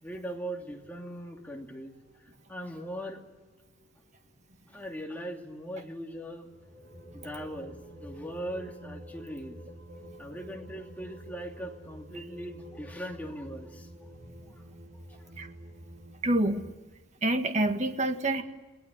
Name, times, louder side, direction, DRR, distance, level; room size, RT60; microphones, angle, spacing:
voice 1, 0.0-2.0 2.5-3.2 4.7-6.5 7.1-9.6 10.2-14.1 14.5-14.6 15.1-15.3, equal, 10° left, 0 dB, 2.9 m, -40 dB
sound 1, 0.6-3.8 6.3-16.7, equal, 60° right, 5.8 m, -49 dB
voice 2, 9.9-10.2 14.3-14.4 15.4-15.5 16.2-16.7 17.2-18.4, right 1 dB, 35° right, 6 dB, 1.9 m, -28 dB
29.5 x 19.5 x 7.6 m, 1.2 s
head